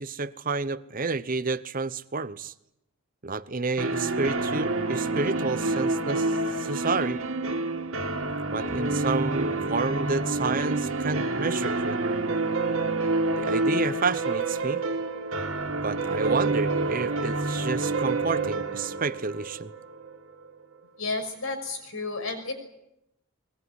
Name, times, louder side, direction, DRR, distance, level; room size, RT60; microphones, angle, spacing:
voice 1, 0.0-2.5 3.2-7.2 8.5-12.0 13.4-14.8 15.8-19.7, right 4 dB, 40° right, 15 dB, 0.9 m, -30 dB
sound 1, 3.8-20.5, right 2 dB, 70° right, 2.6 m, -28 dB
voice 2, 21.0-22.5, left 3 dB, 70° left, 7 dB, 6.0 m, -32 dB
21.5 x 21.0 x 9.7 m, 0.84 s
head